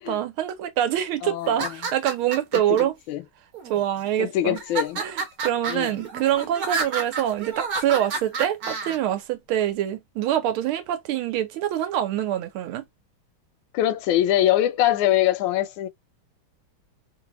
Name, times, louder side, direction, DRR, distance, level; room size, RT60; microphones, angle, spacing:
voice 1, 0.0-2.9 3.7-4.6 5.0-12.8, right 11 dB, 80° right, 1.5 m, -25 dB
voice 2, 1.2-1.8 2.5-3.2 4.2-5.0 5.7-6.0 13.7-15.9, left 12 dB, 75° left, 1.2 m, -23 dB
sound 1, 1.4-2.8 3.5-4.1 4.6-9.0, right 4 dB, 55° right, 1.2 m, -30 dB
3.3 x 2.7 x 2.9 m
omnidirectional pair, 2.4 m